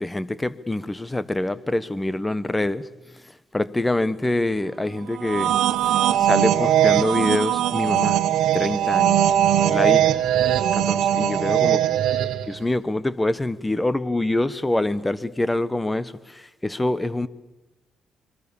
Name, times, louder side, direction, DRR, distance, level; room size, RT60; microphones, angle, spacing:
voice 1, 0.0-2.9 3.5-5.6 6.2-8.2 8.5-9.3 9.7-10.2 10.7-11.8 12.5-17.3, left 2 dB, 15° left, 1.2 m, -25 dB
sound 1, 5.2-12.5, right 11 dB, 80° right, 1.5 m, -20 dB
27.0 x 22.5 x 7.1 m
cardioid pair, 90°, 0 cm